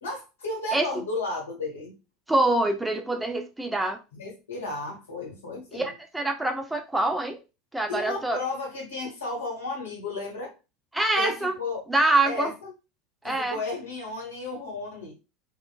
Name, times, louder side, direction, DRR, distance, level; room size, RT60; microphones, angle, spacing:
voice 1, 0.0-2.0 4.1-5.9 7.9-10.5 11.2-11.8 12.2-12.7 13.2-15.1, left 2 dB, 70° left, -1 dB, 1.1 m, -33 dB
voice 2, 0.7-1.1 2.3-4.0 5.7-7.4 7.7-8.4 10.9-11.5 11.9-12.5 13.2-13.6, right 2 dB, 5° right, 4 dB, 0.4 m, -25 dB
3.1 x 2.1 x 2.3 m, 0.28 s
figure-of-eight pair, 75°, 0 cm